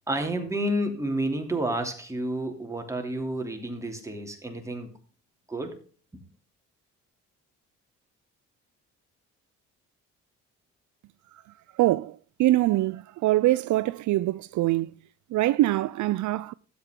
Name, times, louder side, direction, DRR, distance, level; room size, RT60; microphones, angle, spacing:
voice 1, 0.1-4.9 5.5-5.8 6.1-6.2, right 1 dB, 10° right, 3.0 m, -30 dB
voice 2, 11.8-14.9 15.3-16.5, right 16 dB, 70° right, 0.5 m, -24 dB
13.0 x 8.3 x 3.8 m
cardioid pair, 90°, 30 cm